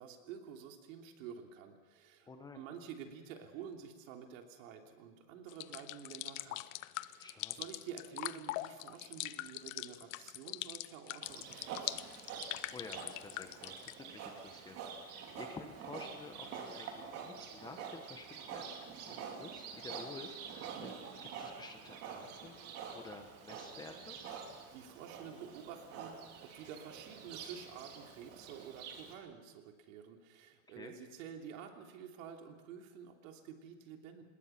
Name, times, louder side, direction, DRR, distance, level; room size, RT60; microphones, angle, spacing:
voice 1, 0.0-2.3 2.5-6.7 7.0-12.1 24.4-34.2, right 8 dB, 70° right, 3 dB, 3.2 m, -50 dB
voice 2, 2.3-2.6 7.2-7.6 12.7-24.2 30.7-30.9, left 3 dB, 10° left, 5 dB, 1.0 m, -51 dB
sound 1, 5.5-13.9, left 18 dB, 70° left, 0.8 m, -42 dB
Livestock farm animals working animals, 11.2-29.1, right 6 dB, 35° right, 2.9 m, -47 dB
26.5 x 20.5 x 5.9 m, 1.3 s
supercardioid pair, 180°, 41 cm